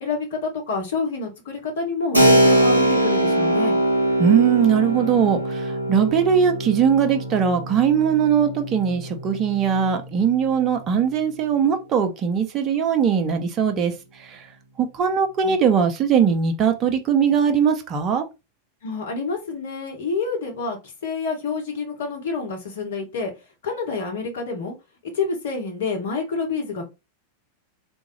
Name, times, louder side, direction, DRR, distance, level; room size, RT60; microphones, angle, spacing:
voice 1, 0.0-3.8 18.8-23.3 23.6-24.7 25.0-26.9, left 4 dB, 55° left, 1.3 m, -28 dB
Keyboard (musical), 2.1-10.5, right 1 dB, 90° left, 0.8 m, -22 dB
voice 2, 4.2-14.5 14.8-18.3, right 7 dB, 30° right, 0.8 m, -20 dB
3.5 x 2.7 x 3.2 m
figure-of-eight pair, 90°, 0 cm